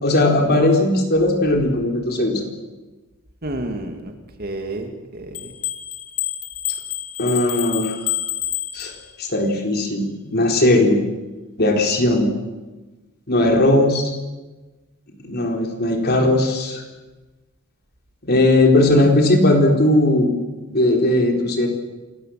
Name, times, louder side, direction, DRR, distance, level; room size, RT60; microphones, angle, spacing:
voice 1, 0.0-2.5 7.2-8.1 8.7-8.9 9.2-11.0 11.6-12.3 13.3-14.0 15.2-16.8 18.2-20.3 20.7-21.7, left 1 dB, 45° left, 3 dB, 4.0 m, -18 dB
voice 2, 3.4-4.1 4.4-5.5, right 1 dB, 45° right, 5 dB, 2.5 m, -30 dB
sound 1, 5.3-9.3, left 12 dB, 75° left, 2.0 m, -28 dB
27.0 x 19.0 x 7.8 m, 1.2 s
head